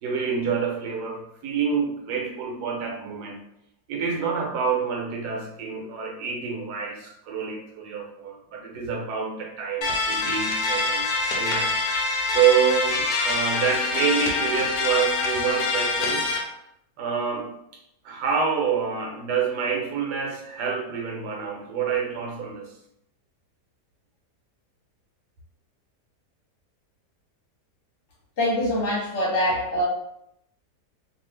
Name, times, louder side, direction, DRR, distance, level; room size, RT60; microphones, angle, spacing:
voice 1, 0.0-3.4 3.9-11.1 11.3-16.3 17.0-17.5 18.0-22.7, right 6 dB, 75° right, 1 dB, 1.2 m, -27 dB
sound 1, 9.8-16.4, left 3 dB, 70° left, 1.0 m, -25 dB
voice 2, 28.4-29.8, equal, 50° left, -5 dB, 1.1 m, -24 dB
2.8 x 2.4 x 3.2 m, 0.77 s
omnidirectional pair, 1.8 m